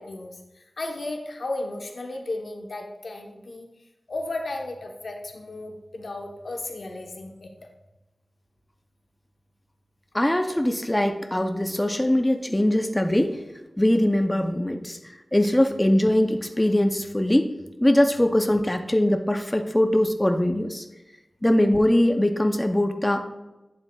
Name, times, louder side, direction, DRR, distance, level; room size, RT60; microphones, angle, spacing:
voice 1, 0.0-3.7 4.1-7.5, left 2 dB, 75° left, 3 dB, 0.9 m, -34 dB
voice 2, 10.1-13.4 13.8-17.5 17.8-20.9 21.4-23.2, left 1 dB, 15° left, 6 dB, 0.5 m, -22 dB
8.9 x 7.4 x 2.3 m, 1.0 s
wide cardioid pair, 65°, 0 cm